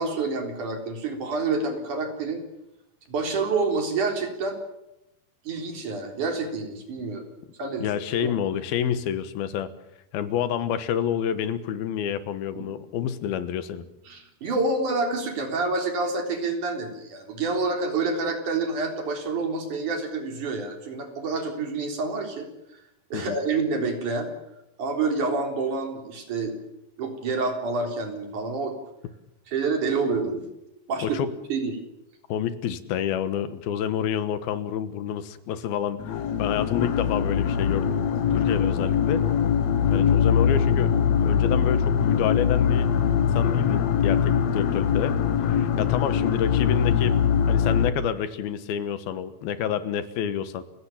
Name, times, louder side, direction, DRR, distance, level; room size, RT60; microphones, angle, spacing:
voice 1, 0.0-2.4 3.1-4.6 5.4-7.2 7.6-7.9 8.2-8.3 12.5-12.6 14.1-22.8 23.1-24.3 24.8-26.5 27.0-28.7 29.5-30.5 30.9-31.2 31.5-31.7 45.7-45.8, right 3 dB, 55° right, 4 dB, 5.1 m, -28 dB
voice 2, 7.8-9.7 10.1-13.8 23.1-23.4 31.0-31.3 32.3-36.0 36.4-38.0 38.3-39.2 39.9-40.9 41.2-42.9 43.2-45.2 45.5-47.2 47.5-50.6, left 9 dB, 90° left, 12 dB, 3.2 m, -28 dB
sound 1, 36.0-47.9, left 7 dB, 60° left, 2.1 m, -22 dB
30.0 x 16.5 x 7.3 m, 0.88 s
omnidirectional pair, 4.2 m